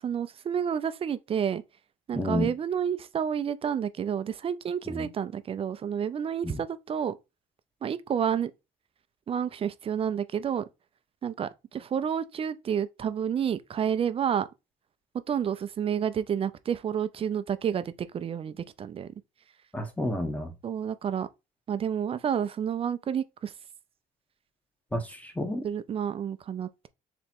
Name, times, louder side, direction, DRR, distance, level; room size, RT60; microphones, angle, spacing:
voice 1, 0.0-1.6 2.1-7.2 7.8-8.5 9.3-10.6 11.2-14.5 15.3-19.1 20.6-21.3 21.7-23.5 25.6-26.9, right 8 dB, 35° right, 0.4 m, -30 dB
voice 2, 2.1-2.5 4.9-5.1 6.4-6.6 19.7-20.5 24.9-25.6, left 1 dB, 10° left, 1.0 m, -30 dB
3.5 x 3.0 x 4.3 m
cardioid pair, 110°, 17 cm